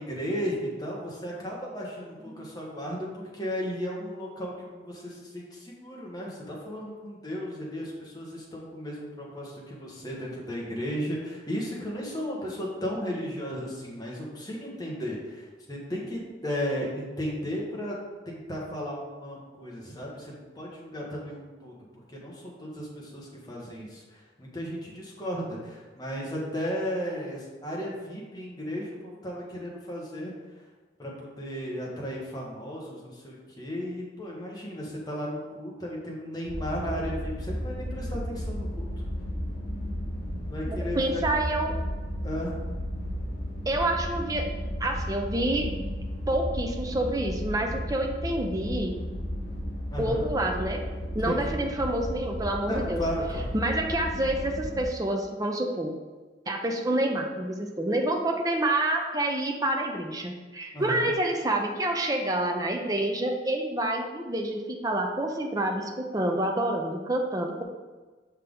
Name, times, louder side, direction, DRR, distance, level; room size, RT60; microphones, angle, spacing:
voice 1, 0.0-18.0 18.2-21.7 22.1-24.0 24.4-30.3 31.0-38.9 40.5-41.2 42.2-42.5 49.9-50.2 51.2-51.6 52.7-53.5 60.7-61.1, equal, 20° left, -3 dB, 1.4 m, -35 dB
sound 1, 36.4-54.8, equal, 65° left, 2.0 m, -34 dB
voice 2, 40.7-41.7 43.7-44.5 44.8-45.7 46.3-48.9 50.0-50.8 51.1-53.0 53.5-55.9 56.5-67.6, right 1 dB, 20° right, 2 dB, 0.6 m, -28 dB
5.9 x 5.5 x 3.8 m, 1.3 s
head